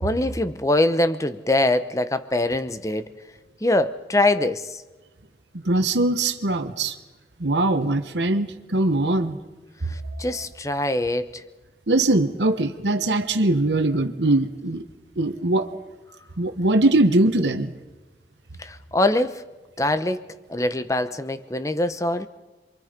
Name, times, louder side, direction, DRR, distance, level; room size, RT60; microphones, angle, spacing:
voice 1, 0.0-3.1 3.6-4.8 9.9-11.4 18.6-19.4 19.8-20.2 20.5-22.3, left 1 dB, 20° left, 11 dB, 0.9 m, -23 dB
voice 2, 5.5-6.9 7.4-9.4 11.9-14.8 15.2-15.7 16.4-17.7, right 2 dB, 90° right, 7 dB, 1.4 m, -21 dB
27.5 x 24.0 x 5.2 m, 1.2 s
head